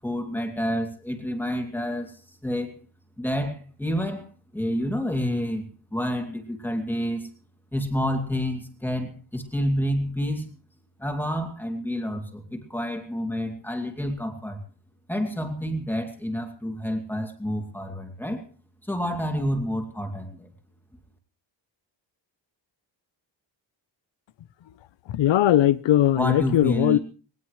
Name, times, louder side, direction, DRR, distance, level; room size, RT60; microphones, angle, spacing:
voice 1, 0.0-2.7 3.2-4.2 4.5-7.3 7.7-10.5 11.0-14.6 15.1-18.4 18.9-20.5 26.1-27.0, equal, 5° left, 2.6 m, -29 dB
voice 2, 25.1-27.0, left 12 dB, 80° left, 0.9 m, -19 dB
20.5 x 18.5 x 3.2 m
wide cardioid pair, 160°, 44 cm